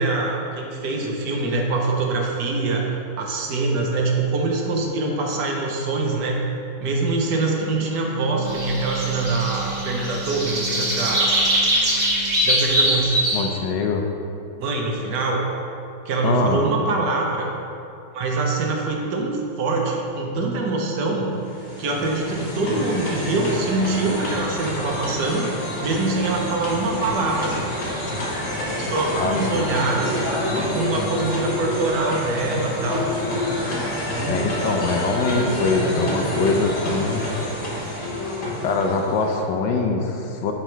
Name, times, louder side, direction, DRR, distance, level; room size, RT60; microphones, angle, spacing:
voice 1, 0.0-2.9 3.2-6.4 6.8-11.3 12.4-13.1 14.6-15.4 16.0-17.5 18.1-21.4 21.8-27.6 28.1-28.2 28.7-30.2 30.6-33.0 34.0-34.9 35.7-36.5, right 3 dB, 60° right, 0 dB, 1.2 m, -24 dB
Wind instrument woodwind instrument, 7.7-12.5, right 2 dB, 80° right, 1.4 m, -36 dB
sound 1, 8.5-13.4, equal, 35° right, 1.5 m, -22 dB
voice 2, 13.3-14.0 16.2-16.7 29.1-29.8 34.3-37.2 37.9-38.0 38.6-40.5, left 4 dB, 70° left, 2 dB, 1.1 m, -23 dB
sound 2, 21.3-39.4, left 1 dB, 40° left, 1.6 m, -28 dB
8.3 x 4.0 x 4.5 m, 2.6 s
omnidirectional pair, 2.4 m